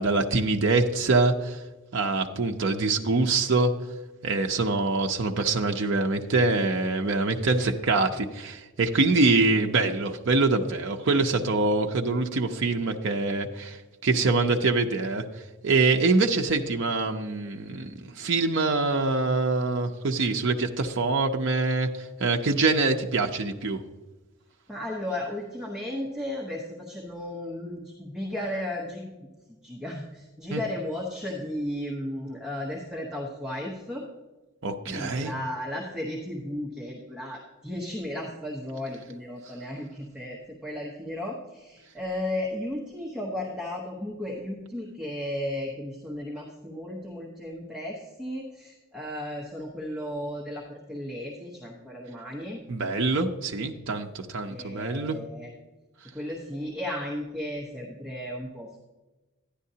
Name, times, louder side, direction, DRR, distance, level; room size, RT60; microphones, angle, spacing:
voice 1, 0.0-1.6 1.9-3.7 4.2-15.2 15.6-23.8 30.5-30.6 34.6-35.3 52.7-55.2, right 3 dB, 55° right, 3 dB, 0.5 m, -24 dB
voice 2, 24.7-29.1 29.6-34.0 34.9-52.6 54.5-55.5 56.1-58.8, left 1 dB, 5° right, -3 dB, 0.9 m, -34 dB
11.5 x 9.9 x 2.8 m, 1.1 s
head